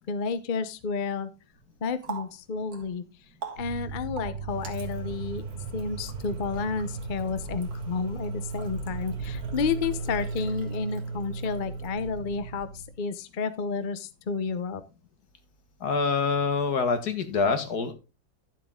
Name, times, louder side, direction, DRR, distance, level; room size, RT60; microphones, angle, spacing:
voice 1, 0.1-1.3 1.8-3.0 3.6-5.5 5.7-12.7 13.0-14.8, left 5 dB, 40° left, 12 dB, 0.8 m, -31 dB
Water tap faucet, 1.5-12.3, right 6 dB, 65° right, 2.3 m, -46 dB
sound 1, 3.6-12.9, right 4 dB, 40° right, 3.1 m, -36 dB
voice 2, 15.8-17.9, left 5 dB, 75° left, 8 dB, 2.1 m, -25 dB
12.0 x 7.5 x 3.6 m, 0.28 s
omnidirectional pair, 1.7 m